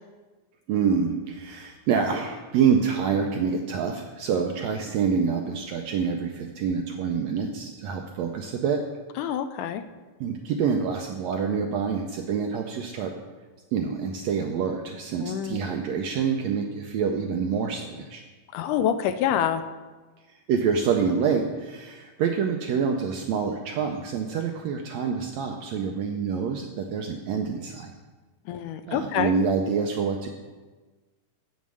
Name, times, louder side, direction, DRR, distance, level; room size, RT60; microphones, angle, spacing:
voice 1, 0.7-8.8 10.2-13.1 13.7-18.2 20.5-27.9 28.9-30.3, right 6 dB, 80° right, 3 dB, 1.6 m, -26 dB
voice 2, 9.2-9.8 15.2-15.7 18.5-19.6 28.5-29.3, left 9 dB, 80° left, 11 dB, 1.9 m, -26 dB
8.1 x 7.3 x 6.2 m, 1.3 s
omnidirectional pair, 3.7 m